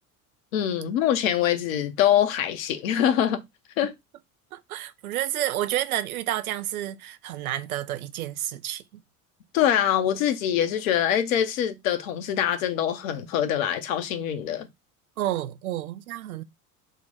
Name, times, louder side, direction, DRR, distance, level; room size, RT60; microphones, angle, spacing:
voice 1, 0.5-3.4 3.8-3.9 9.5-14.7, left 10 dB, 60° left, 0.7 m, -24 dB
voice 2, 4.5-8.8 15.2-16.4, right 13 dB, 70° right, 0.5 m, -30 dB
3.8 x 2.1 x 3.8 m
figure-of-eight pair, 65°, 45 cm